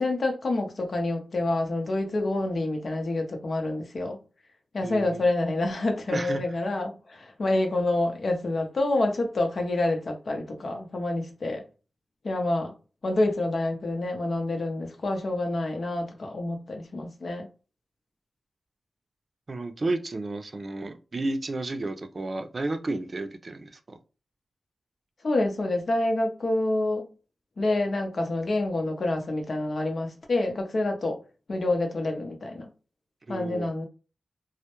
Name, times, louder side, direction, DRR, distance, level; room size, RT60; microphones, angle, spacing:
voice 1, 0.0-4.2 4.7-11.6 12.2-12.7 13.0-17.5 25.2-27.1 27.6-31.2 31.5-32.7 33.3-33.9, left 2 dB, 65° left, 0.6 m, -27 dB
voice 2, 4.8-5.2 6.1-6.4 19.5-24.0 33.3-33.7, right 2 dB, 50° right, 0.5 m, -32 dB
2.1 x 2.0 x 2.9 m
cardioid pair, 45°, 0 cm